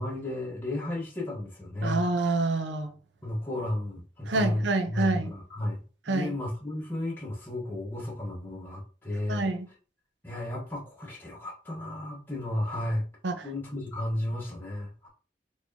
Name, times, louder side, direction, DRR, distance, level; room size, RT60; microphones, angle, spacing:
voice 1, 0.0-2.0 3.2-9.5 10.2-13.1 13.4-15.1, left 1 dB, 10° left, 1.1 m, -33 dB
voice 2, 1.8-2.9 4.3-5.3 6.1-6.4 9.3-9.7 13.2-13.5, right 2 dB, 75° right, 0.6 m, -27 dB
4.4 x 3.0 x 2.7 m
head